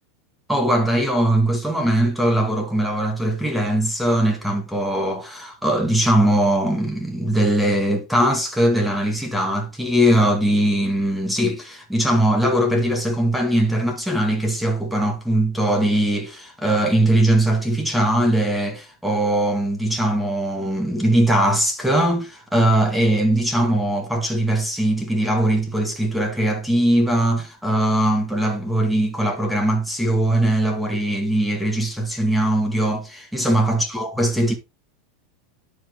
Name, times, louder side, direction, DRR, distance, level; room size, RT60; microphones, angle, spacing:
voice 1, 0.5-34.6, right 1 dB, ahead, 2.0 m, -20 dB
11.5 x 5.3 x 3.8 m
supercardioid pair, 140°, 0 cm